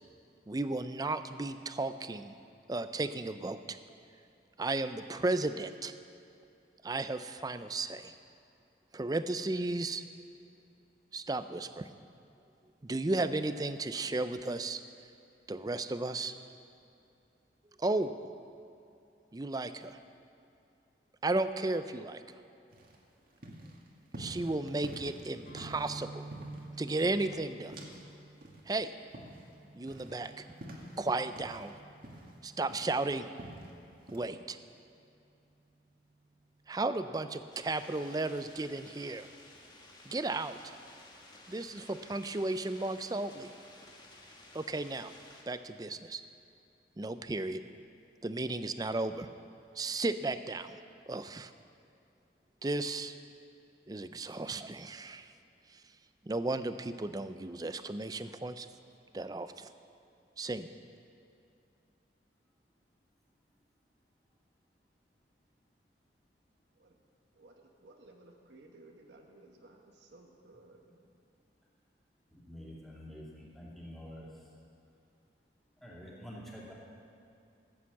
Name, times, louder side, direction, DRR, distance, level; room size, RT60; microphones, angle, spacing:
voice 1, 0.5-2.3 2.7-3.8 4.6-5.9 6.8-8.1 8.9-10.0 11.1-11.9 12.8-14.8 15.5-16.3 17.8-18.2 19.3-20.0 21.2-22.2 24.2-26.2 26.8-27.7 28.7-28.9 29.7-30.3 31.0-31.7 32.4-33.3 34.1-34.6 36.7-39.3 40.1-40.6 41.5-43.5 44.5-45.1 45.5-46.2 47.0-47.6 48.2-49.3 49.8-50.8 51.1-51.5 52.6-53.2 53.9-55.3 55.7-55.8 56.3-58.7 59.1-59.7 60.4-60.7, right 2 dB, 20° right, 11 dB, 0.4 m, -34 dB
sound 1, 22.7-28.1 28.4-31.7 32.0-33.7 34.1-34.3, right 1 dB, 50° right, 1.7 m, -48 dB
sound 2, 25.4-33.2, right 2 dB, 50° left, 2.4 m, -50 dB
sound 3, 37.5-45.4, left 2 dB, 25° left, 1.5 m, -55 dB
voice 2, 67.4-70.8, right 2 dB, 75° right, 2 dB, 1.2 m, -57 dB
voice 3, 72.4-74.3 75.8-76.7, equal, ahead, -6 dB, 2.6 m, -47 dB
14.0 x 8.7 x 7.1 m, 2.6 s
head